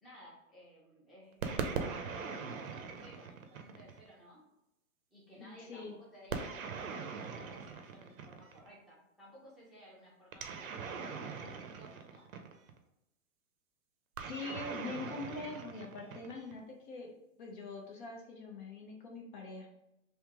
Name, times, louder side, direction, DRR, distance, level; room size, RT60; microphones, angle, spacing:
voice 1, 0.0-4.4 5.1-6.9 7.3-12.2, equal, ahead, -8 dB, 0.7 m, -57 dB
sound 1, 1.4-4.1 6.3-8.7 10.3-12.8 14.2-16.6, right 5 dB, 75° right, 0.8 m, -41 dB
voice 2, 5.4-6.0 14.2-17.1 17.4-19.7, left 3 dB, 35° left, 0 dB, 0.8 m, -44 dB
3.5 x 2.8 x 3.6 m, 0.88 s
hypercardioid pair, 140°, 42 cm